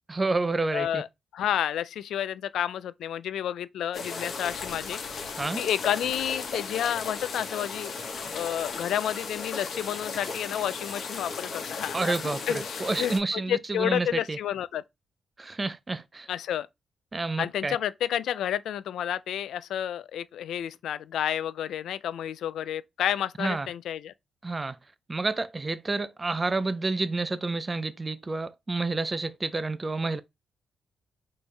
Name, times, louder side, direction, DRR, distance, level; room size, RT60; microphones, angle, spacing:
voice 1, 0.1-1.0 5.4-5.6 11.9-14.4 15.4-16.3 17.1-17.8 23.4-23.7 24.4-24.8 25.1-30.2, right 3 dB, 25° right, 0.5 m, -29 dB
voice 2, 0.7-1.1 1.3-5.0 5.6-7.9 8.3-12.1 12.5-13.1 13.5-14.8 16.3-16.7 17.4-24.1, left 10 dB, 90° left, 0.3 m, -30 dB
sound 1, 3.9-13.2, left 4 dB, 60° left, 1.1 m, -36 dB
4.2 x 3.2 x 3.3 m
cardioid pair, 115°, 0 cm